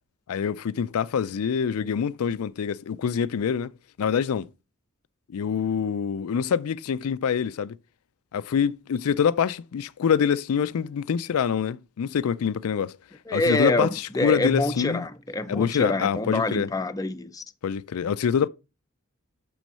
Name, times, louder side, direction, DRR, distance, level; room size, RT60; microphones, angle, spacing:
voice 1, 0.3-3.7 4.0-4.5 5.3-7.8 8.3-13.0 13.3-15.0 15.5-16.7 17.6-18.5, left 7 dB, 85° left, 0.4 m, -25 dB
voice 2, 13.3-17.4, left 2 dB, 15° left, 0.5 m, -26 dB
6.3 x 6.1 x 5.5 m
head